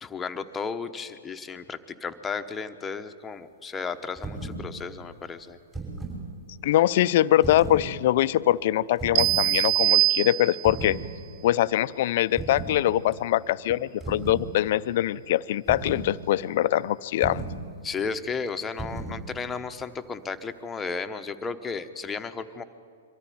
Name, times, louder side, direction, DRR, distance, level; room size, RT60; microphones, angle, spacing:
voice 1, 0.0-5.6 17.8-22.6, left 5 dB, 15° left, 7 dB, 1.0 m, -34 dB
sound 1, 4.2-4.6 5.5-6.2 7.4-7.9 9.0-9.4 10.6-11.0 12.4-12.8 14.0-14.5 15.7-16.1 17.2-17.6 18.8-19.2, right 3 dB, 15° right, 6.3 m, -35 dB
voice 2, 6.6-11.0 11.4-17.4, left 13 dB, 55° left, 16 dB, 0.5 m, -23 dB
sound 2, 9.2-10.9, right 17 dB, 40° right, 0.6 m, -23 dB
24.0 x 14.0 x 9.4 m, 2.3 s
hypercardioid pair, 115°, 0 cm